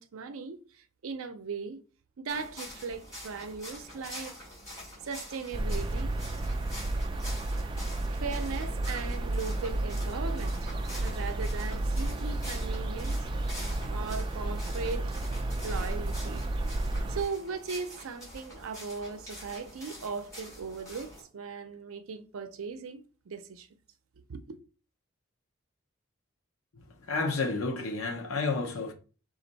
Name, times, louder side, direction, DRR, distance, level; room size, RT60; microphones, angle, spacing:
voice 1, 0.0-1.8 2.2-4.4 5.0-6.2 8.1-13.3 13.9-15.1 15.6-16.5 17.1-23.7 24.2-24.6, right 5 dB, 85° right, 0.5 m, -38 dB
sound 1, 2.3-21.2, equal, 15° left, 2.6 m, -46 dB
sound 2, 5.5-17.2, right 2 dB, 25° right, 0.3 m, -32 dB
voice 2, 26.9-28.9, left 3 dB, 90° left, 0.7 m, -31 dB
5.1 x 2.5 x 3.9 m
head